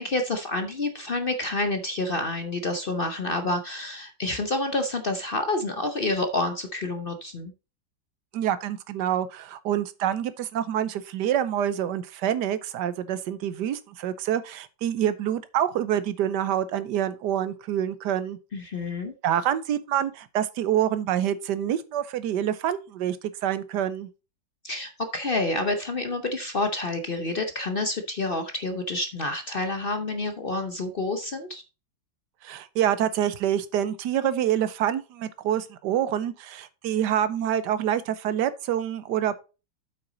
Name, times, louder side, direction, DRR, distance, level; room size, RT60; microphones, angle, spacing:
voice 1, 0.0-7.5 18.5-19.1 24.6-31.6, left 2 dB, 50° left, 0.6 m, -28 dB
voice 2, 8.3-18.4 19.2-23.2 23.4-24.1 32.4-39.4, right 10 dB, 75° right, 1.3 m, -26 dB
8.1 x 5.9 x 3.9 m
omnidirectional pair, 1.9 m